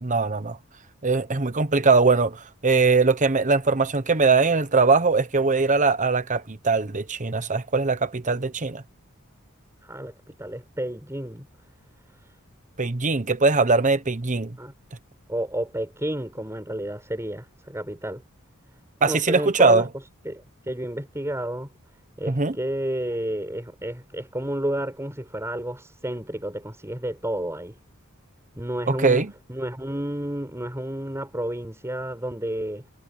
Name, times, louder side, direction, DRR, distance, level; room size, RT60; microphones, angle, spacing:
voice 1, 0.0-0.6 1.0-8.8 12.8-14.6 19.0-19.9 22.3-22.6 28.9-29.3, right 4 dB, 35° right, 1.1 m, -21 dB
voice 2, 9.8-11.5 14.6-14.7 15.3-18.2 19.0-19.9 20.2-21.7 22.2-27.8 28.6-32.8, right 1 dB, 15° right, 7.6 m, -31 dB
head